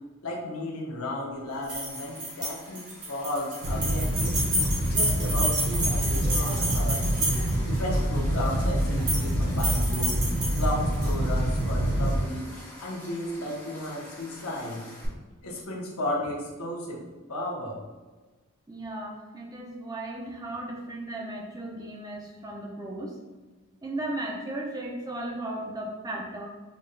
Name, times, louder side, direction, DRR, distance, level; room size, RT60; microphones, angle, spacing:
voice 1, 0.2-4.4 4.9-7.0 7.6-10.1 10.5-12.5 12.8-14.8 15.4-17.0 17.3-17.8, left 1 dB, 90° left, -3 dB, 0.9 m, -34 dB
sound 1, 1.6-7.7 8.8-9.3 9.6-11.1, right 1 dB, 40° right, 1.3 m, -30 dB
sound 2, 1.9-15.0, equal, 10° left, 0.7 m, -46 dB
sound 3, 3.6-12.2, right 1 dB, 65° right, 0.7 m, -26 dB
voice 2, 18.7-23.1 23.8-26.5, right 1 dB, 15° right, -2 dB, 0.4 m, -36 dB
5.2 x 2.6 x 2.2 m, 1.3 s
head